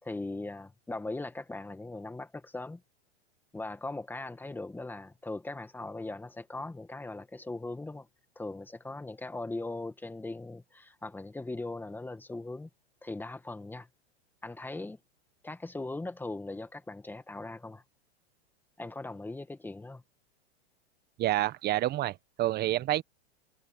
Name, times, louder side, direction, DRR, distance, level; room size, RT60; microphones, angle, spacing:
voice 1, 0.0-2.8 3.5-8.1 8.3-12.7 13.0-13.9 14.4-15.0 15.4-17.8 18.8-20.0, left 2 dB, 5° left, 1.7 m, -39 dB
voice 2, 21.2-23.0, right 15 dB, 30° right, 1.3 m, -28 dB
hypercardioid pair, 125°, 33 cm